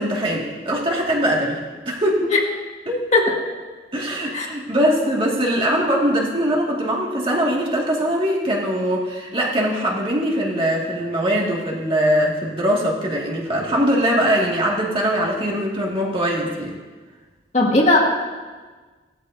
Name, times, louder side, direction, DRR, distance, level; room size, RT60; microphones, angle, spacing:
voice 1, 0.0-1.6 1.9-2.2 2.9-3.1 3.9-16.8, equal, 30° right, -3 dB, 2.1 m, -21 dB
voice 2, 17.5-18.0, left 2 dB, 40° left, -2 dB, 1.9 m, -16 dB
17.5 x 13.0 x 2.7 m, 1.4 s
head